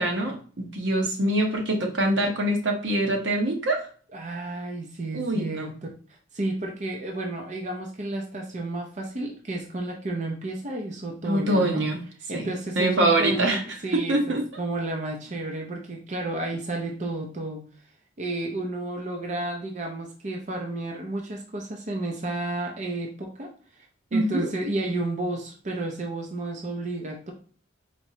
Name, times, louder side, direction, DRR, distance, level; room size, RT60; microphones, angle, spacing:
voice 1, 0.0-3.8 5.1-5.7 11.2-12.0 12.3-12.5 12.8-13.6 13.9-14.5 24.1-24.5, right 1 dB, 75° right, 2 dB, 1.0 m, -24 dB
voice 2, 4.1-11.8 12.3-17.6 18.2-23.5 23.8-23.9 24.1-27.3, right 2 dB, 40° right, 1 dB, 0.6 m, -32 dB
4.4 x 3.0 x 2.7 m, 0.42 s
head